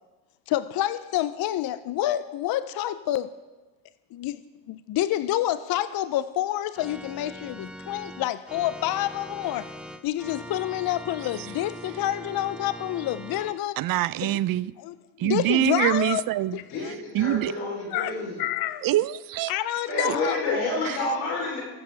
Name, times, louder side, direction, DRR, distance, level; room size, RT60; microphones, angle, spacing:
voice 1, 0.5-3.3 4.1-4.4 4.7-9.7 10.0-13.8 14.2-14.3 14.8-14.9 15.2-16.2 16.5-16.9 17.9-18.8 19.5-20.6, left 13 dB, 50° left, 0.5 m, -28 dB
Organ, 6.7-13.6, equal, ahead, 0.6 m, -41 dB
voice 2, 13.8-14.7 15.2-16.6 17.1-17.5 18.8-19.5 19.9-20.2 20.9-21.0, right 14 dB, 50° right, 0.4 m, -25 dB
voice 3, 16.7-18.4 19.9-21.6, left 2 dB, 85° left, 3.5 m, -29 dB
20.0 x 7.2 x 3.3 m
supercardioid pair, 75°, 47 cm